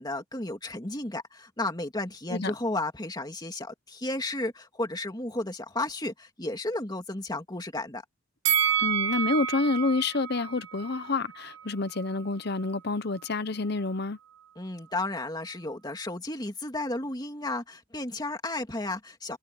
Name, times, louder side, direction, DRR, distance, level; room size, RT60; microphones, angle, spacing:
voice 1, 0.0-8.0 14.6-19.4, left 2 dB, 20° left, 2.6 m, -33 dB
Bell, 8.4-11.6 12.0-12.1, right 9 dB, 70° right, 1.4 m, -29 dB
voice 2, 8.8-14.2, left 3 dB, 55° left, 0.9 m, -28 dB
head